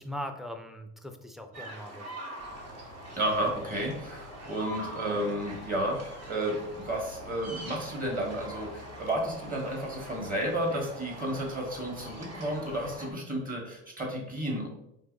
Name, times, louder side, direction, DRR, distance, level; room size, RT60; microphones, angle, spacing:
voice 1, 0.0-2.0, equal, ahead, 5 dB, 0.4 m, -40 dB
sound 1, 1.5-13.1, right 1 dB, 50° right, 1.2 m, -44 dB
sound 2, 2.4-13.0, left 3 dB, 80° right, 1.5 m, -52 dB
voice 2, 3.2-14.7, right 1 dB, 25° right, 0 dB, 1.3 m, -32 dB
4.6 x 3.0 x 2.5 m, 0.79 s
supercardioid pair, 95°, 33 cm